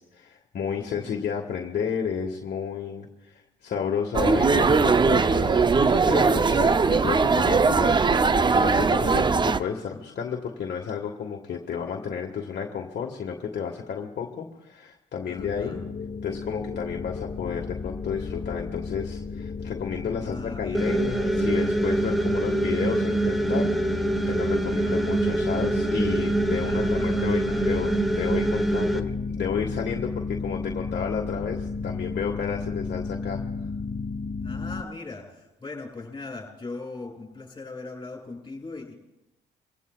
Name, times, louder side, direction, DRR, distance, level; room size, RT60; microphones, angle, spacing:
voice 1, 0.0-15.8 16.2-33.4, left 7 dB, 60° left, 0 dB, 1.5 m, -32 dB
voice 2, 0.7-1.2 15.2-15.8 20.2-20.9 24.6-25.0 26.6-27.8 34.4-38.9, left 3 dB, 20° left, -2 dB, 7.0 m, -40 dB
sound 1, 4.1-9.6, right 4 dB, 25° right, 0.5 m, -20 dB
sound 2, 15.4-34.8, left 4 dB, 40° left, 0.7 m, -33 dB
sound 3, 20.7-29.0, right 2 dB, ahead, 1.1 m, -25 dB
24.0 x 16.5 x 2.3 m, 0.97 s
cardioid pair, 90°, 20 cm